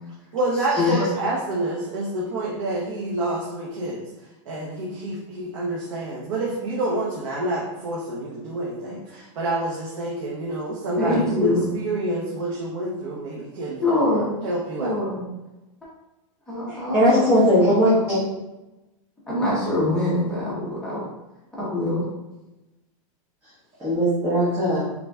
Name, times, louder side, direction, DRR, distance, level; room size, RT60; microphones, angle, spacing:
voice 1, 0.3-13.8 14.4-15.0, right 1 dB, 70° right, -4 dB, 0.9 m, -28 dB
voice 2, 11.0-11.6 13.8-14.3 14.8-15.3 16.5-17.3 17.5-18.1 19.3-21.0 21.6-22.0, left 2 dB, 5° left, -8 dB, 1.1 m, -24 dB
voice 3, 16.7-18.2 23.8-24.8, equal, 15° right, -11 dB, 1.2 m, -19 dB
4.4 x 3.7 x 2.4 m, 1.0 s
supercardioid pair, 150°, 17 cm